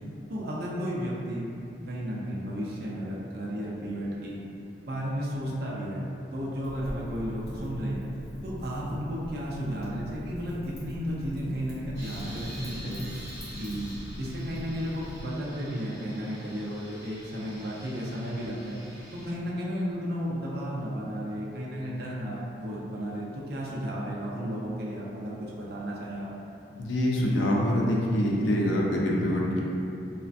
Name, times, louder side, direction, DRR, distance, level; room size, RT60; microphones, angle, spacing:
voice 1, 0.3-1.4 1.9-4.4 4.8-8.1 8.4-13.1 13.6-13.9 14.2-18.8 19.2-26.3, equal, 55° right, -5 dB, 0.5 m, -33 dB
Wind / Fire, 6.6-15.2, equal, 55° left, 0.9 m, -41 dB
sound 1, 11.9-19.3, equal, 15° right, 1.5 m, -47 dB
voice 2, 26.8-29.6, left 1 dB, 85° left, -3 dB, 0.5 m, -25 dB
3.2 x 2.1 x 2.5 m, 2.7 s
head